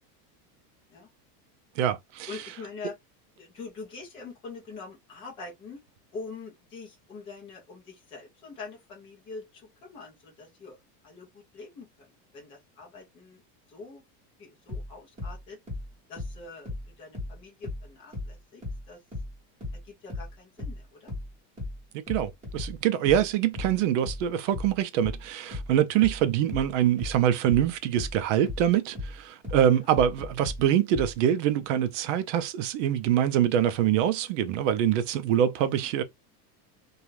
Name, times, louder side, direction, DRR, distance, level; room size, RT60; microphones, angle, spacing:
voice 1, 1.8-2.4 21.9-36.0, right 10 dB, 50° right, 0.5 m, -25 dB
voice 2, 2.3-2.9 3.4-5.8 6.1-10.8 11.0-13.4 13.7-14.0 14.4-15.6 16.1-19.0 19.7-21.1 29.7-29.9, left 4 dB, 15° left, 0.4 m, -44 dB
sound 1, 14.7-17.9 18.1-31.2, left 2 dB, 15° right, 1.3 m, -36 dB
2.5 x 2.3 x 3.0 m
supercardioid pair, 170°, 48 cm